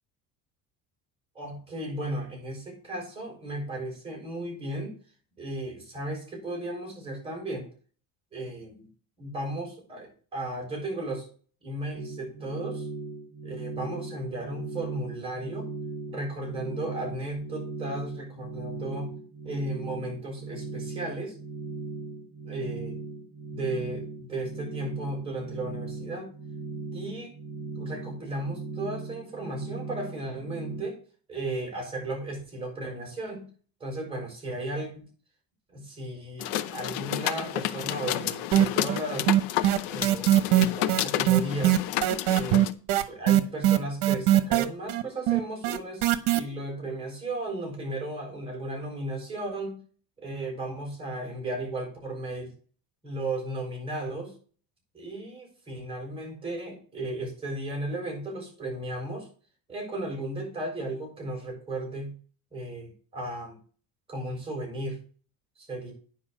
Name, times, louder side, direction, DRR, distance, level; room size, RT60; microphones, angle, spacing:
voice 1, 1.3-4.9 5.4-7.7 8.3-8.9 9.2-11.2 11.6-12.9 13.4-15.7 16.1-19.1 19.4-21.3 22.4-23.0 23.5-26.3 26.9-27.3 27.8-31.0 31.3-33.4 33.8-35.1 35.7-39.3 39.9-41.8 42.3-42.6 43.1-46.0 46.3-49.8 50.2-52.5 53.0-54.3 54.9-59.3 59.7-62.1 62.5-63.6 64.1-65.0 65.6-65.9, right 1 dB, 15° right, -1 dB, 6.5 m, -35 dB
sound 1, 11.9-30.8, right 3 dB, 30° right, 3.9 m, -38 dB
sound 2, 36.4-42.7, left 13 dB, 75° left, 0.9 m, -31 dB
sound 3, 38.5-39.0 39.3-46.4, right 14 dB, 70° right, 1.1 m, -21 dB
9.8 x 5.6 x 6.5 m, 0.41 s
cardioid pair, 150°, 40 cm